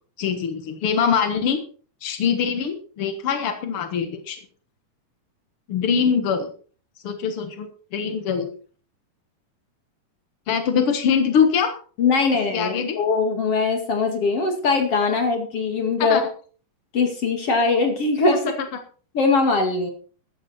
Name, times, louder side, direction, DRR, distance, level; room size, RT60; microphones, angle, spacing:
voice 1, 0.2-1.6 2.0-4.4 5.7-6.5 7.0-7.7 7.9-8.5 10.5-11.8 12.5-13.0 16.0-16.2, left 7 dB, 65° left, 7 dB, 1.4 m, -23 dB
voice 2, 12.0-16.2 16.9-18.5 19.1-19.9, left 4 dB, 45° left, 4 dB, 2.7 m, -21 dB
14.5 x 12.5 x 4.4 m, 0.41 s
omnidirectional pair, 4.6 m